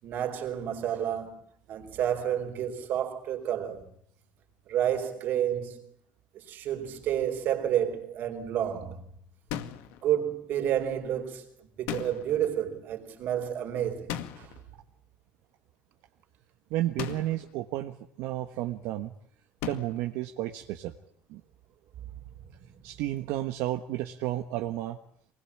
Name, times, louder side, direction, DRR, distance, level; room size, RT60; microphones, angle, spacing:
voice 1, 0.0-1.4 1.7-3.8 4.7-5.9 6.3-9.0 10.0-14.5 22.6-22.7, right 10 dB, 50° right, 4.4 m, -30 dB
sound 1, 9.5-10.0 11.9-12.5 14.1-14.6 17.0-17.5 19.6-20.1, left 11 dB, 80° left, 2.1 m, -36 dB
voice 2, 16.7-19.1 19.6-20.9 21.3-21.4 22.8-25.0, right 14 dB, 75° right, 1.4 m, -32 dB
24.5 x 20.5 x 8.7 m
cardioid pair, 160°, 4 cm